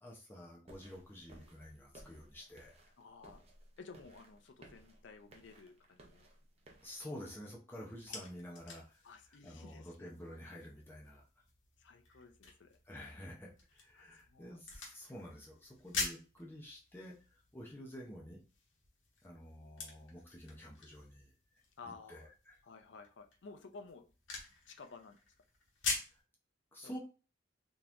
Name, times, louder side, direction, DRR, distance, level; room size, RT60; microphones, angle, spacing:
voice 1, 0.0-2.8 6.8-9.0 9.4-11.2 12.9-18.4 19.2-21.3 22.1-22.6 26.0-26.2 26.7-27.0, equal, 10° left, -3 dB, 0.7 m, -50 dB
sound 1, 0.7-7.0, right 1 dB, 35° right, 0.7 m, -60 dB
voice 2, 3.0-3.4 3.8-6.3 8.1-8.2 9.0-10.1 11.8-12.8 14.0-14.6 21.8-22.3 22.6-24.1 24.7-25.2 26.8-27.0, left 4 dB, 65° left, 6 dB, 0.5 m, -54 dB
sound 2, 7.7-26.2, left 4 dB, 80° left, 1.1 m, -47 dB
3.8 x 3.0 x 2.5 m, 0.34 s
head